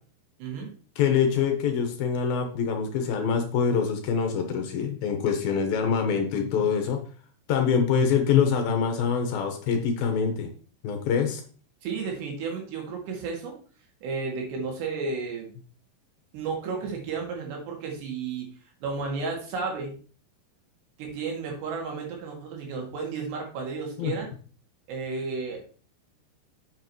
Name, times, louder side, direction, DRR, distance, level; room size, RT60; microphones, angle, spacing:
voice 1, 0.4-0.7 11.8-13.6 14.0-15.5 16.3-18.5 18.8-20.0 21.0-24.3 24.9-25.6, right 4 dB, 85° right, 1 dB, 4.3 m, -33 dB
voice 2, 1.0-7.0 7.5-10.5 10.8-11.4 24.0-24.1, left 6 dB, 70° left, 5 dB, 2.6 m, -25 dB
8.4 x 7.4 x 3.1 m, 0.41 s
omnidirectional pair, 4.8 m